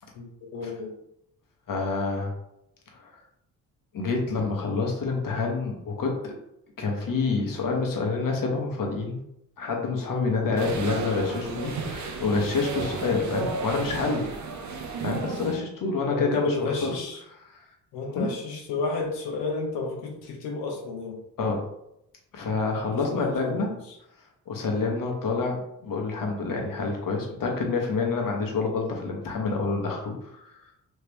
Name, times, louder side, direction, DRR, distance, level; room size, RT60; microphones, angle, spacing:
voice 1, 0.5-0.9 16.1-17.2 17.9-21.2 23.1-23.8, left 3 dB, 85° left, 1 dB, 0.9 m, -31 dB
voice 2, 1.7-2.3 2.9-3.1 3.9-6.3 6.8-9.2 9.6-14.3 15.0-16.5 16.8-16.9 18.1-18.3 21.4-21.6 22.3-23.7 24.5-30.7, left 4 dB, 55° left, 1 dB, 1.2 m, -27 dB
sound 1, 10.6-15.6, right 4 dB, 45° right, 0.8 m, -33 dB
3.3 x 2.8 x 3.4 m, 0.80 s
supercardioid pair, 55°, 40 cm